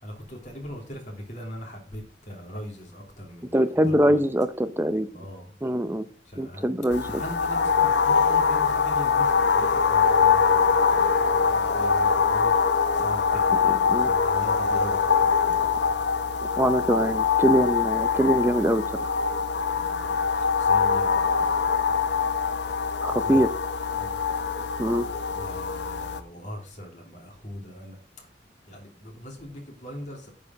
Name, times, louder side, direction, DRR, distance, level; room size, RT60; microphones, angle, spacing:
voice 1, 0.0-4.2 5.1-5.5 6.3-6.7 7.1-12.5 12.9-15.8 19.7-21.8 23.1-23.5 23.9-24.1 25.3-28.0 28.7-30.3, equal, 40° left, 0 dB, 3.1 m, -40 dB
voice 2, 3.5-5.2 5.6-6.1 6.4-7.2 13.6-14.1 16.4-19.1 23.0-23.5 24.8-25.1, right 1 dB, 10° right, 12 dB, 0.6 m, -23 dB
sound 1, 6.9-26.2, left 5 dB, 65° left, 0.9 m, -23 dB
9.9 x 4.9 x 6.2 m, 0.43 s
head